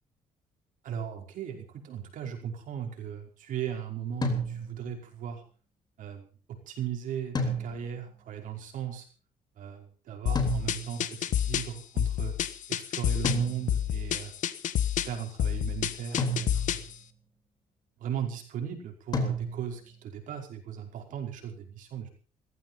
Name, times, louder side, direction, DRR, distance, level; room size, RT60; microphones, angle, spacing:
voice 1, 0.8-5.4 6.0-9.1 9.6-12.3 12.7-14.3 15.0-16.8 18.0-22.1, right 9 dB, 70° right, 3 dB, 5.3 m, -37 dB
sound 1, 4.2-5.0 7.3-8.1 10.4-11.1 13.2-14.0 16.2-16.9 19.1-19.9, equal, 30° left, 3.7 m, -32 dB
sound 2, 10.3-16.9, left 10 dB, 65° left, 1.2 m, -29 dB
16.0 x 15.5 x 5.6 m, 0.40 s
cardioid pair, 140°, 14 cm